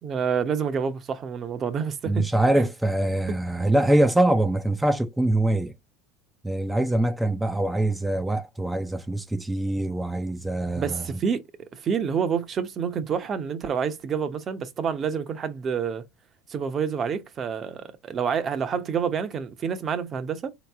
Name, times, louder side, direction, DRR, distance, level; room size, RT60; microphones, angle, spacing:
voice 1, 0.0-2.3 2.6-2.7 10.8-11.4 11.7-16.0 16.5-20.6, right 7 dB, 35° right, 0.8 m, -28 dB
voice 2, 2.0-5.7 6.4-11.2, right 1 dB, 5° right, 0.5 m, -24 dB
3.8 x 3.0 x 3.5 m
hypercardioid pair, 95°, 0 cm